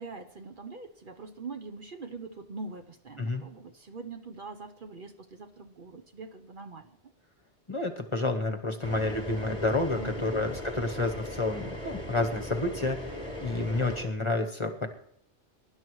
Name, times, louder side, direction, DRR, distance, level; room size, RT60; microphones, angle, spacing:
voice 1, 0.0-6.9 10.0-10.4, right 3 dB, 50° right, 6 dB, 0.9 m, -43 dB
voice 2, 7.7-14.9, left 2 dB, 25° left, 5 dB, 1.0 m, -30 dB
sound 1, 8.8-14.0, left 1 dB, 20° right, 3.7 m, -38 dB
22.5 x 11.5 x 3.1 m, 0.68 s
omnidirectional pair, 1.2 m